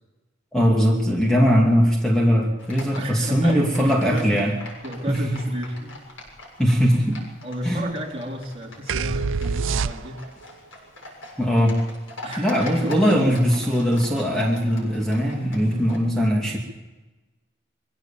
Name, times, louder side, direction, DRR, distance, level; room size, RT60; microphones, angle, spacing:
voice 1, 0.5-4.5 5.1-5.3 6.6-7.2 7.6-7.8 11.4-11.8 12.4-16.6, equal, 5° left, -1 dB, 2.6 m, -20 dB
Livestock farm animals working animals, 2.6-16.0, left 2 dB, 90° left, 7.0 m, -42 dB
voice 2, 2.9-4.6 4.8-6.0 7.4-10.2 12.2-13.1 15.5-15.8, equal, 30° right, -2 dB, 3.9 m, -31 dB
sound 1, 8.9-10.4, right 5 dB, 75° right, 0.6 m, -25 dB
23.0 x 16.5 x 7.2 m, 1.1 s
head